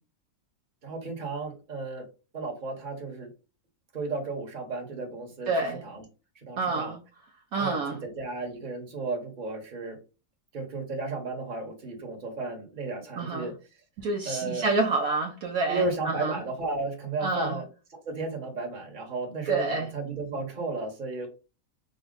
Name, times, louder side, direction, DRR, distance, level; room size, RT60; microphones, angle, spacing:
voice 1, 0.8-2.1 2.3-3.3 3.9-6.0 6.3-7.0 7.6-10.0 10.5-13.5 14.2-14.7 15.7-21.3, right 3 dB, 30° right, 0 dB, 1.3 m, -34 dB
voice 2, 5.5-5.8 6.6-7.0 7.5-8.0 13.2-13.5 14.0-16.4 17.2-17.6 19.5-19.9, right 3 dB, 65° right, 1 dB, 1.1 m, -28 dB
5.3 x 2.3 x 3.9 m, 0.31 s
omnidirectional pair, 1.8 m